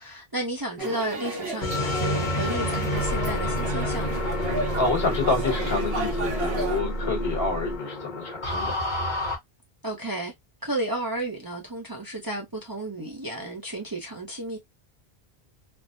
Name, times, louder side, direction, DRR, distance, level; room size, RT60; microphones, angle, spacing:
voice 1, 0.0-4.2 9.8-10.3 10.6-14.6, right 1 dB, 25° right, 0.6 m, -32 dB
sound 1, 0.8-6.8, right 3 dB, 70° right, 1.0 m, -34 dB
sound 2, 1.6-9.3, left 1 dB, 50° left, 1.1 m, -28 dB
voice 2, 4.8-8.8, left 3 dB, 70° left, 1.5 m, -28 dB
3.3 x 2.1 x 2.5 m
omnidirectional pair, 1.0 m